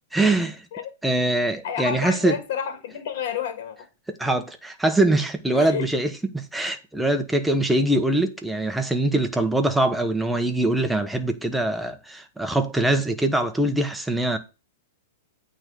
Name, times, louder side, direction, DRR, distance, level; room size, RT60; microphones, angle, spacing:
voice 1, 0.1-0.7 1.0-2.4 4.1-14.4, right 2 dB, 5° right, 1.1 m, -23 dB
voice 2, 1.6-3.9 5.5-5.9, left 7 dB, 55° left, 2.7 m, -30 dB
8.8 x 3.8 x 6.8 m
hypercardioid pair, 140°, 0 cm